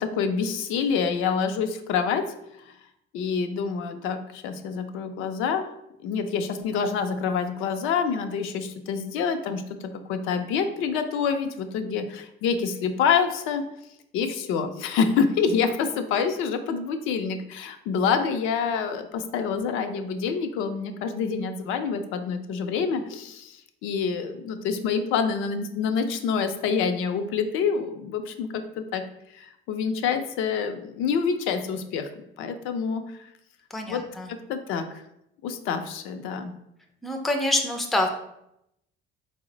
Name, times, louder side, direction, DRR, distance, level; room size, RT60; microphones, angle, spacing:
voice 1, 0.0-2.2 3.1-5.6 6.0-9.6 10.1-13.6 14.1-28.5 28.8-29.0 29.3-32.1 32.4-33.3 33.9-34.0 34.3-34.9 35.4-36.5, left 6 dB, 75° left, 7 dB, 0.4 m, -27 dB
voice 2, 33.7-34.3 37.0-38.1, left 1 dB, ahead, 3 dB, 0.3 m, -26 dB
3.8 x 2.0 x 3.7 m, 0.79 s
cardioid pair, 130°, 21 cm